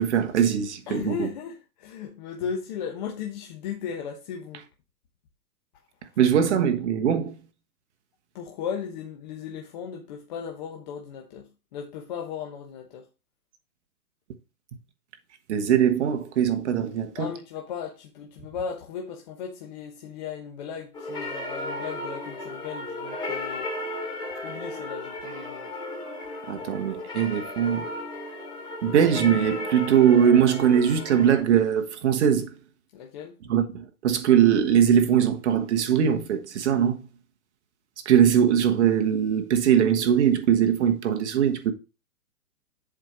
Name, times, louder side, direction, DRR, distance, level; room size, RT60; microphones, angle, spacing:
voice 1, 0.0-1.3 6.2-7.3 15.5-17.3 26.5-27.9 28.8-32.5 33.5-37.0 38.0-41.7, right 8 dB, 50° right, 1.3 m, -21 dB
voice 2, 0.9-4.6 8.3-13.0 17.2-23.7 24.4-25.7 32.9-33.3, left 7 dB, 30° left, 1.0 m, -36 dB
sound 1, 20.9-31.4, left 2 dB, 10° left, 2.5 m, -35 dB
7.4 x 4.4 x 5.1 m
hypercardioid pair, 155°, 46 cm